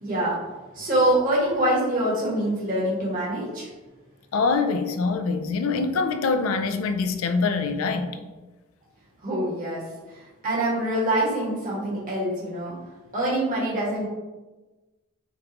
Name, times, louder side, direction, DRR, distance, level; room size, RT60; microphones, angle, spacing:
voice 1, 0.0-0.4 0.7-3.7 9.2-12.7 13.1-14.1, right 1 dB, 40° right, 1.3 m, -25 dB
voice 2, 4.3-8.2, left 4 dB, 75° left, 0.4 m, -24 dB
5.3 x 2.4 x 3.0 m
head